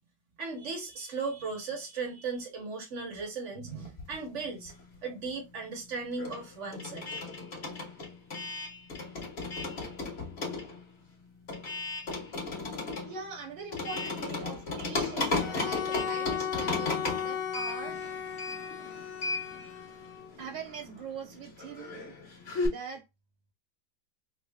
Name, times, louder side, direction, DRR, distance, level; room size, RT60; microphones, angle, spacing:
voice 1, 0.4-4.7 5.0-7.1, right 4 dB, 50° right, 1.0 m, -37 dB
sound 1, 3.9-5.1 5.4-22.7, left 3 dB, 35° left, 1.3 m, -36 dB
voice 2, 13.0-18.0 19.4-19.5 20.4-22.2 22.7-23.0, right 6 dB, 75° right, 1.5 m, -42 dB
Bowed string instrument, 15.4-20.4, left 8 dB, 80° left, 1.6 m, -36 dB
3.6 x 2.1 x 3.4 m
omnidirectional pair, 2.1 m